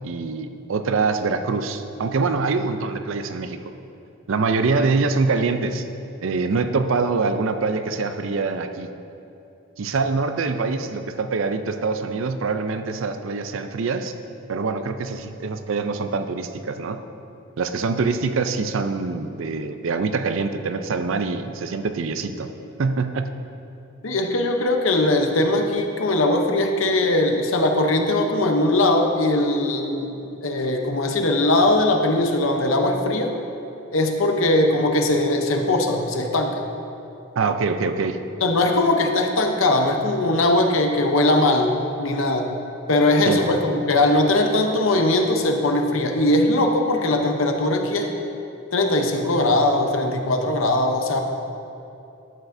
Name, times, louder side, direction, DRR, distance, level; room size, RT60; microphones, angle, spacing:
voice 1, 0.0-3.7 4.3-5.9 6.2-8.9 9.8-14.1 14.5-17.0 17.6-22.5 22.8-23.3 37.4-38.2 43.2-43.4, right 4 dB, 65° right, 9 dB, 0.5 m, -24 dB
voice 2, 24.0-33.3 33.9-36.6 38.4-42.5 42.9-48.1 48.7-51.2, left 2 dB, 70° left, 4 dB, 0.8 m, -20 dB
12.0 x 8.2 x 2.6 m, 2.8 s
head